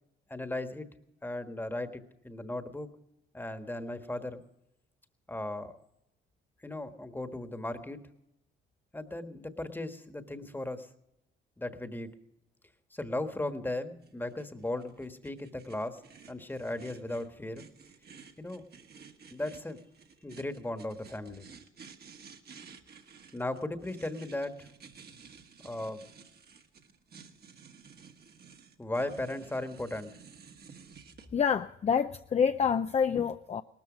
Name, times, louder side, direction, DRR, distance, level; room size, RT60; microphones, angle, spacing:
voice 1, 0.3-0.9 1.2-2.9 3.3-4.4 5.3-5.8 6.6-8.0 8.9-10.9 11.6-12.1 12.9-17.6 18.4-18.6 19.3-19.8 20.2-21.5 23.3-24.7 25.6-26.0 28.8-30.1, left 1 dB, 10° left, 1.4 m, -37 dB
sound 1, 14.0-31.3, right 6 dB, 55° right, 1.6 m, -53 dB
voice 2, 31.3-33.6, left 7 dB, 35° left, 0.5 m, -27 dB
18.5 x 13.5 x 5.1 m
cardioid pair, 90°, 20 cm